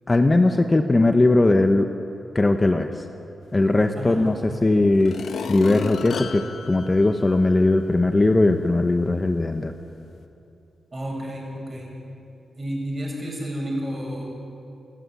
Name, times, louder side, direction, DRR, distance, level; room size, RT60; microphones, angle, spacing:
voice 1, 0.1-1.9 2.3-2.9 3.5-5.1 5.5-9.7, left 2 dB, 25° left, 6 dB, 1.1 m, -19 dB
sound 1, 4.2-4.3 4.9-7.8 8.3-8.4, left 5 dB, 75° left, 1.4 m, -33 dB
voice 2, 10.9-11.9 12.6-14.2, equal, 30° right, -2 dB, 7.9 m, -31 dB
28.5 x 12.5 x 9.5 m, 2.8 s
cardioid pair, 85°, 0 cm